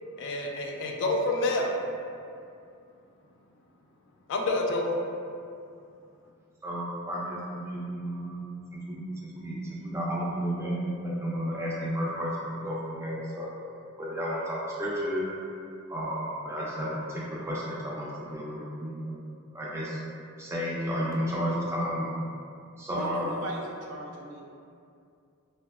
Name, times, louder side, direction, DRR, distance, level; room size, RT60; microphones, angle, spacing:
voice 1, 0.2-1.7 4.3-5.0, left 2 dB, 55° left, 1 dB, 0.3 m, -28 dB
voice 2, 6.6-13.5 14.0-15.2 15.9-19.2 19.5-20.0 20.4-22.2 22.8-23.3, equal, 10° right, -6 dB, 0.5 m, -32 dB
voice 3, 23.0-24.4, right 1 dB, 75° right, -2 dB, 0.4 m, -37 dB
3.8 x 2.1 x 2.2 m, 2.4 s
head